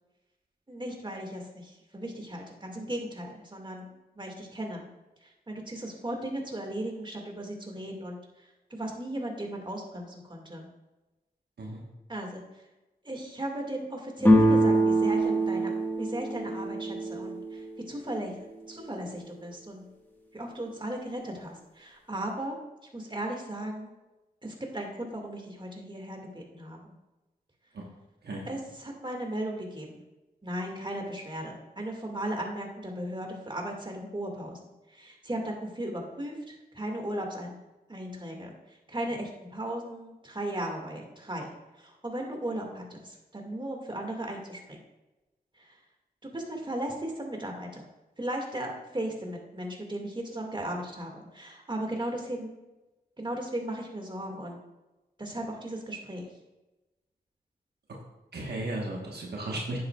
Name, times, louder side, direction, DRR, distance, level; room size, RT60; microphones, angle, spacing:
voice 1, 0.7-4.9 5.2-10.7 12.1-12.4 13.0-15.7 16.0-18.4 18.7-19.8 20.3-22.6 22.9-23.9 24.4-26.9 28.5-29.9 30.4-34.6 34.9-37.6 37.9-44.8 45.6-45.8 46.2-47.8 48.2-52.5 53.2-54.6 55.2-56.3, right 1 dB, 30° right, 1 dB, 2.0 m, -36 dB
sound 1, 14.2-17.8, right 1 dB, 10° left, 1.5 m, -24 dB
voice 2, 58.3-59.8, right 2 dB, 80° right, -1 dB, 1.3 m, -35 dB
9.5 x 7.8 x 2.4 m, 1.0 s
cardioid pair, 40°, 17 cm